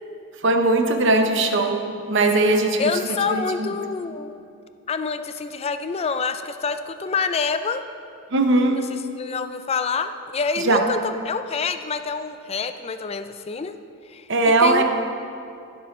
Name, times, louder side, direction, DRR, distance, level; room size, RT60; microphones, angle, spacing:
voice 1, 0.4-1.8 2.1-2.8 3.3-3.4 8.3-8.8 10.6-10.8 14.3-14.8, right 2 dB, 55° right, 5 dB, 0.8 m, -18 dB
voice 2, 2.8-4.3 4.9-7.8 8.9-13.8 14.1-14.8, left 5 dB, 30° left, 10 dB, 0.3 m, -27 dB
15.5 x 7.2 x 3.2 m, 2.5 s
head